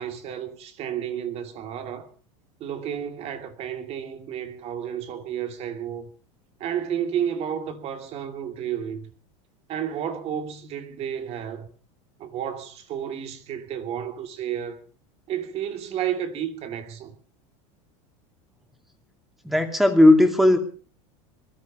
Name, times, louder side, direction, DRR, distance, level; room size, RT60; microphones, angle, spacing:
voice 1, 0.0-2.1 2.6-6.1 6.6-9.1 9.7-11.7 12.2-14.8 15.3-17.1, right 9 dB, 40° right, 2.7 m, -31 dB
voice 2, 19.4-20.6, left 1 dB, ahead, 2.6 m, -16 dB
21.0 x 13.0 x 5.2 m
supercardioid pair, 140°, 16 cm